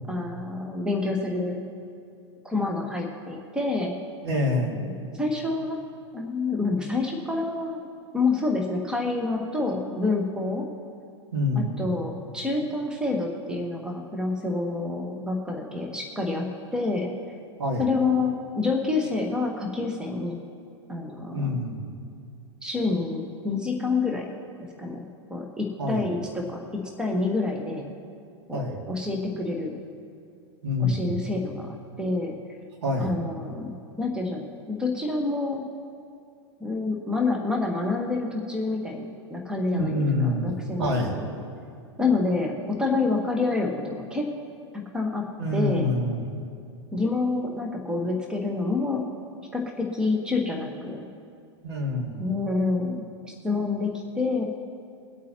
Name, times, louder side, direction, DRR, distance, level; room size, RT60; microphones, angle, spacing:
voice 1, 0.1-1.6 2.4-3.9 4.8-5.9 6.1-7.8 8.1-10.7 11.5-17.1 17.8-20.4 20.9-21.6 22.6-25.0 25.3-26.6 27.0-27.8 28.5-29.7 30.8-32.3 33.0-35.7 36.6-41.2 42.0-44.3 44.7-45.2 45.5-45.9 46.9-49.0 49.5-51.0 52.2-54.4, left 3 dB, 5° right, 1 dB, 1.4 m, -28 dB
voice 2, 4.2-4.8 11.3-11.8 17.6-17.8 21.3-21.8 25.8-26.0 28.5-28.8 30.6-31.1 32.8-33.2 39.7-40.5 40.8-41.1 45.4-46.2 51.6-52.2, left 2 dB, 65° right, -1 dB, 2.6 m, -26 dB
22.5 x 8.4 x 3.0 m, 2.4 s
figure-of-eight pair, 95°, 15 cm